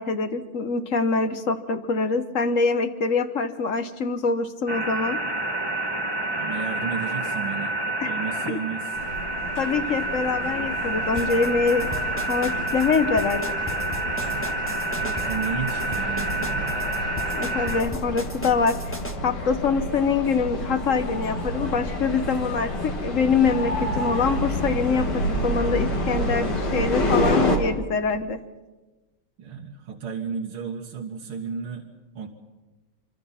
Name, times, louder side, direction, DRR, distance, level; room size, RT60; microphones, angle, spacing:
voice 1, 0.0-5.2 8.0-8.1 8.5-8.6 9.6-11.9 12.3-13.7 17.3-18.8 19.2-28.4, left 4 dB, 45° left, 9 dB, 1.1 m, -24 dB
sound 1, 4.7-17.8, right 1 dB, 15° right, 1.4 m, -28 dB
voice 2, 6.4-9.1 14.2-16.8 29.4-32.3, right 6 dB, 75° right, 1 dB, 2.3 m, -34 dB
sound 2, 9.0-27.6, left 1 dB, 75° left, 3.7 m, -29 dB
sound 3, 11.2-19.2, left 1 dB, 10° left, 1.0 m, -36 dB
25.5 x 25.0 x 5.8 m, 1.1 s
omnidirectional pair, 2.4 m